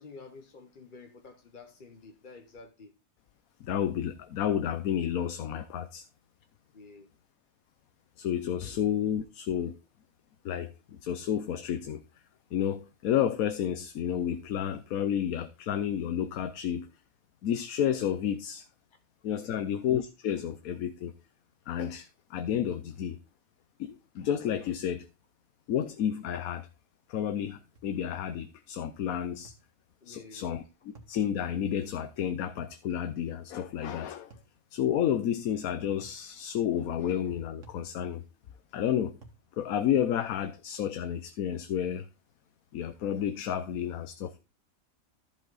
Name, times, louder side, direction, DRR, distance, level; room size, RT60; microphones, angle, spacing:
voice 1, 0.0-2.9 6.7-7.1 8.6-8.8 19.4-19.7 30.0-30.5, left 4 dB, 40° left, 0.9 m, -50 dB
voice 2, 3.6-6.1 8.2-9.8 10.4-12.0 12.5-16.9 17.4-18.7 19.2-21.1 21.7-23.2 23.8-25.1 25.7-26.7 27.1-29.5 30.1-30.6 31.1-34.3 34.7-38.2 38.7-39.2 39.5-42.1 42.7-44.4, left 9 dB, 80° left, 1.2 m, -31 dB
sound 1, 27.8-28.0 29.4-29.7 30.9-31.2 32.6-32.8 34.3-34.6 36.0-36.3 37.6-37.9 39.2-39.5, right 3 dB, 65° right, 2.1 m, -53 dB
14.0 x 5.4 x 3.9 m
omnidirectional pair, 1.5 m